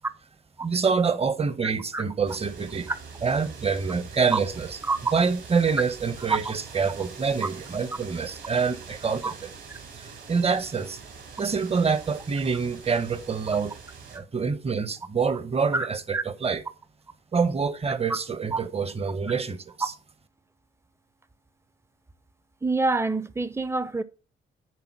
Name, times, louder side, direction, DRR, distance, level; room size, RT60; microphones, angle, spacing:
voice 1, 0.6-2.9 3.2-4.7 5.1-9.5 9.9-11.0 11.4-13.8 14.1-16.6 17.3-19.9, right 5 dB, 30° right, 1.0 m, -26 dB
sound 1, 2.3-14.2, right 5 dB, 70° right, 3.9 m, -44 dB
voice 2, 22.6-24.0, right 3 dB, 15° right, 0.8 m, -26 dB
10.5 x 3.9 x 6.1 m
cardioid pair, 90°, 20 cm